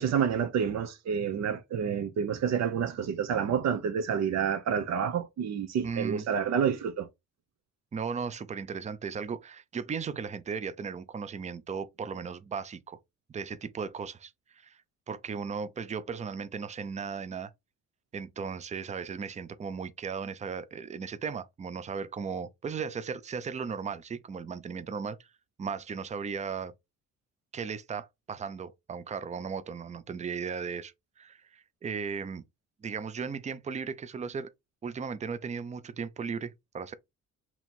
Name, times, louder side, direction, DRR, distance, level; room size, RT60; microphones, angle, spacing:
voice 1, 0.0-7.1, right 7 dB, 60° right, 0.6 m, -29 dB
voice 2, 5.8-6.2 7.9-13.0 13.3-14.8 15.1-17.5 18.1-25.3 25.6-26.7 27.5-32.4 32.8-34.5 34.8-36.9, right 6 dB, 25° right, 0.5 m, -36 dB
2.9 x 2.8 x 4.2 m
cardioid pair, 90°, 30 cm